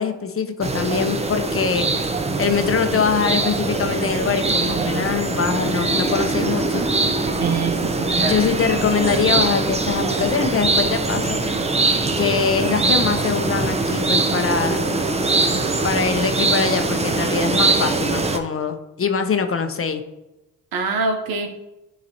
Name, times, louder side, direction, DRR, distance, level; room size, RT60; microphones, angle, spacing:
voice 1, 0.0-6.9 8.2-11.4 12.2-14.8 15.8-20.0, left 6 dB, 35° left, 7 dB, 0.7 m, -23 dB
sound 1, 0.6-18.4, right 3 dB, 20° right, 0.7 m, -22 dB
voice 2, 7.4-8.4 20.7-21.5, right 4 dB, 75° right, 4 dB, 1.0 m, -25 dB
9.4 x 4.0 x 2.9 m, 0.99 s
supercardioid pair, 60°, 36 cm